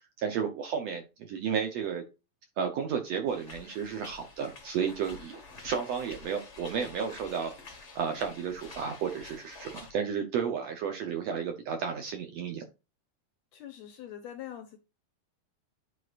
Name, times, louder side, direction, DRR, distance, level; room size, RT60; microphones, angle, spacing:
voice 1, 0.2-2.0 2.6-12.6, right 7 dB, 70° right, 5 dB, 1.6 m, -33 dB
sound 1, 3.3-9.9, left 4 dB, 45° left, 0.9 m, -49 dB
voice 2, 13.5-14.8, left 11 dB, 75° left, 6 dB, 1.7 m, -43 dB
10.5 x 4.7 x 2.5 m, 0.27 s
omnidirectional pair, 3.8 m